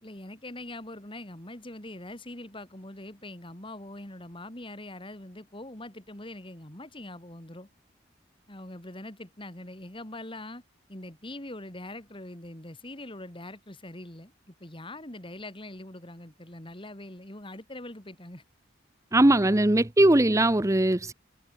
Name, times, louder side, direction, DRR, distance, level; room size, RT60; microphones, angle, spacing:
voice 1, 0.0-7.7 8.5-10.6 10.9-18.4, left 1 dB, 25° left, 3.3 m, -43 dB
voice 2, 19.1-21.1, right 1 dB, 15° right, 0.8 m, -20 dB
head